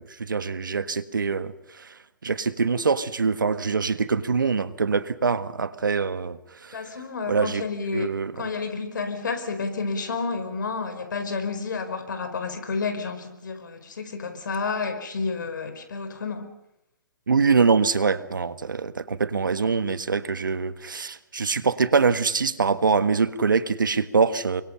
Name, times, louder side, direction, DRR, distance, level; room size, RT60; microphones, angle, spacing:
voice 1, 0.0-1.9 2.2-6.8 7.3-7.6 7.9-8.3 17.3-24.6, right 5 dB, 85° right, 13 dB, 1.4 m, -24 dB
voice 2, 6.7-8.1 8.3-16.5, left 4 dB, 75° left, 8 dB, 4.9 m, -30 dB
28.5 x 24.0 x 5.6 m, 0.84 s
hypercardioid pair, 125°, 10 cm